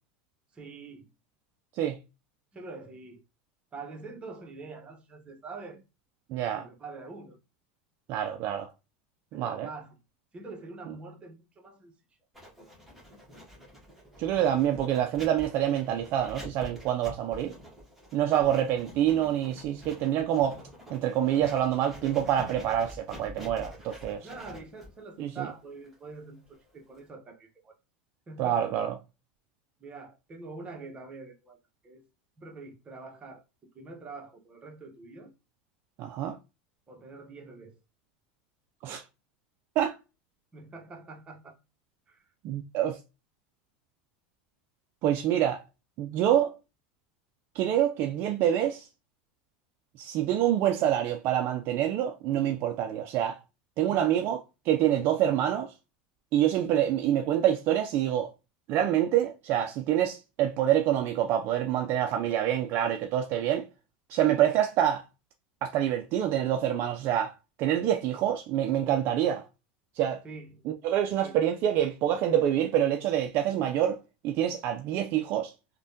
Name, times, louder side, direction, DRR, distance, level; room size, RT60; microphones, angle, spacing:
voice 1, 0.5-1.1 2.5-3.2 3.7-5.8 6.4-7.4 9.3-10.0 10.3-11.9 12.6-12.7 18.2-18.5 24.2-27.8 28.3-28.7 29.8-32.0 32.4-33.4 33.7-35.3 36.9-37.8 40.5-41.6 42.1-42.2 53.8-54.3 70.2-70.6 71.2-71.4, right 3 dB, 25° right, 0.9 m, -45 dB
voice 2, 6.3-6.7 8.1-8.7 9.3-9.7 14.2-17.5 18.1-20.6 20.9-24.3 25.2-25.5 28.4-28.9 36.0-36.4 38.8-39.0 39.8-40.0 42.4-43.0 45.0-45.6 46.0-46.5 47.5-48.9 50.0-53.4 53.8-54.4 54.7-55.7 56.3-58.3 58.7-63.7 64.1-65.0 65.6-69.5 70.0-70.2 70.8-74.0 74.2-75.5, right 11 dB, 50° right, 0.4 m, -26 dB
Writing, 12.3-27.1, equal, 5° right, 1.3 m, -47 dB
3.3 x 2.2 x 2.6 m
supercardioid pair, 115°, 5 cm